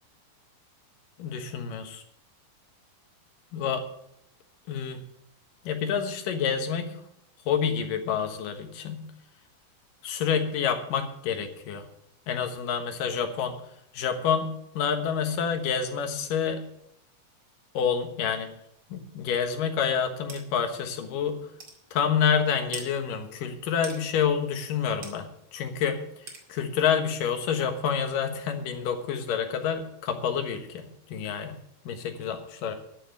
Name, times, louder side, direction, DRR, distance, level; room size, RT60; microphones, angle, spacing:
voice 1, 1.2-2.0 3.5-3.8 4.7-5.0 5.6-7.0 7.5-9.0 10.0-11.8 12.3-13.6 13.9-14.5 14.8-16.6 17.7-18.5 18.9-21.4 21.9-25.3 25.5-26.0 26.5-31.5 31.8-32.7, left 7 dB, 70° left, 6 dB, 2.8 m, -28 dB
sound 1, 20.3-20.4 21.0-21.1 21.6-21.8 22.7-22.9 23.8-24.0 25.0-25.2 26.3-26.4, right 3 dB, 35° right, 2.2 m, -40 dB
12.5 x 6.7 x 9.2 m, 0.76 s
omnidirectional pair, 4.2 m